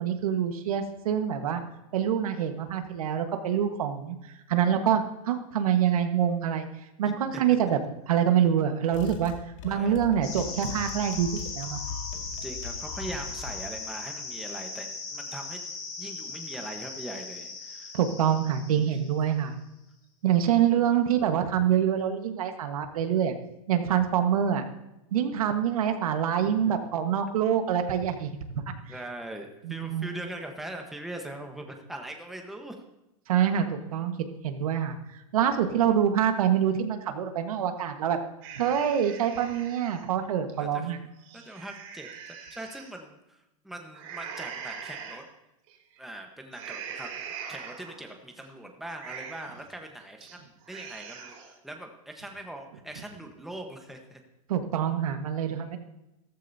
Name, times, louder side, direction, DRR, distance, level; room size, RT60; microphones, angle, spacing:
voice 1, 0.0-1.6 1.9-4.2 4.5-6.7 7.0-7.8 8.1-9.3 9.6-11.3 11.5-11.8 17.9-19.6 20.2-23.3 23.7-24.6 25.1-28.6 29.6-30.0 33.3-34.1 34.4-35.0 35.3-38.2 38.6-41.0 54.5-55.8, right 9 dB, 85° right, 6 dB, 1.5 m, -25 dB
sound 1, 8.9-13.7, left 5 dB, 60° left, 2.2 m, -40 dB
sound 2, 10.2-19.4, left 4 dB, 45° left, 4.2 m, -39 dB
voice 2, 12.4-15.6 16.0-18.0 18.9-19.0 20.6-20.9 25.8-26.1 26.6-26.7 28.9-32.8 35.6-35.9 40.6-40.9 41.3-45.3 46.0-47.2 47.5-54.2, right 1 dB, ahead, 3 dB, 1.1 m, -41 dB
sound 3, 38.4-40.0 40.5-40.6 41.1-42.9 43.9-45.2 45.7-46.0 46.5-48.1 48.4-48.5 48.9-49.6 50.0-50.4 50.6-51.5, right 7 dB, 55° right, 3.9 m, -42 dB
14.0 x 14.0 x 2.8 m, 0.91 s
supercardioid pair, 145°, 18 cm